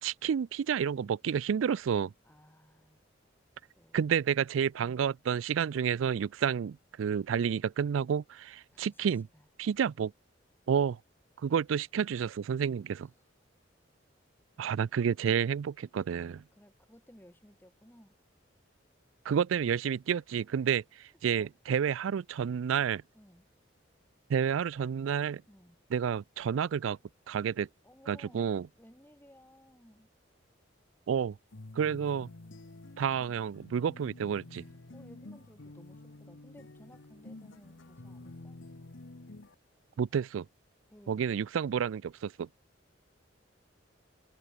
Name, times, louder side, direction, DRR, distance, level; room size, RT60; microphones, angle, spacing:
voice 1, 0.0-2.1 3.9-9.3 9.6-10.1 10.7-11.0 11.4-13.1 14.6-16.4 19.2-23.0 24.3-25.4 25.9-27.0 27.3-27.7 28.1-28.7 31.1-31.4 31.7-32.3 33.0-34.6 40.0-40.5 41.1-42.5, right 7 dB, 90° right, 0.4 m, -30 dB
voice 2, 2.2-3.0 3.8-4.0 8.7-9.1 9.3-9.5 16.5-18.1 21.3-21.5 23.1-23.4 25.5-25.8 27.8-28.5 28.8-30.1 34.9-38.6 40.9-41.3, equal, 10° left, 7.3 m, -58 dB
sound 1, 31.5-39.5, left 2 dB, 80° left, 1.2 m, -49 dB
head